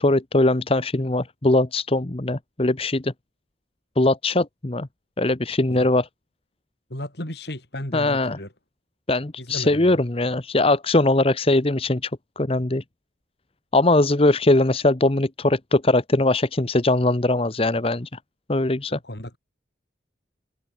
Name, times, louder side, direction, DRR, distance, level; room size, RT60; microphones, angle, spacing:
voice 1, 0.0-3.1 4.0-4.9 5.2-6.1 7.9-8.4 9.1-12.1 12.4-12.8 13.7-18.1 18.5-19.0, left 2 dB, 30° left, 1.0 m, -21 dB
voice 2, 6.9-8.5 9.4-10.0 18.9-19.4, left 1 dB, 60° left, 4.6 m, -34 dB
head